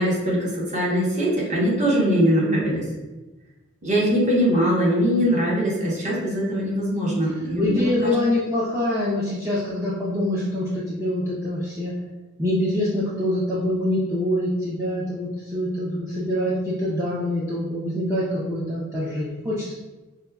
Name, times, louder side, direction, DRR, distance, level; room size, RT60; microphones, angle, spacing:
voice 1, 0.0-2.8 3.8-8.1, equal, 35° right, -5 dB, 1.0 m, -22 dB
voice 2, 7.6-11.9 12.4-19.7, left 1 dB, 15° right, -8 dB, 0.5 m, -25 dB
4.9 x 2.2 x 2.2 m, 1.1 s
head